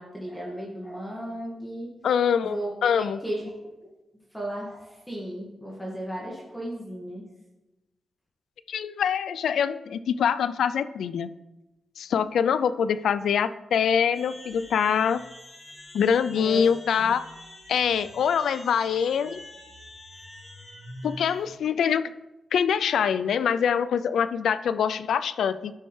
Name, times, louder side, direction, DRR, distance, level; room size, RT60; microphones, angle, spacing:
voice 1, 0.0-1.9 2.4-2.7 3.0-3.5 4.3-7.2 16.3-16.7 17.0-17.1, right 1 dB, 5° left, -3 dB, 1.8 m, -35 dB
voice 2, 2.0-3.2 8.7-11.3 12.0-15.2 15.9-17.3 17.7-19.4 21.0-22.0 22.5-25.7, left 7 dB, 80° left, 14 dB, 0.3 m, -24 dB
sound 1, 14.1-21.6, left 1 dB, 40° left, 3.2 m, -45 dB
13.0 x 5.5 x 3.2 m, 1.0 s
cardioid pair, 70°, 0 cm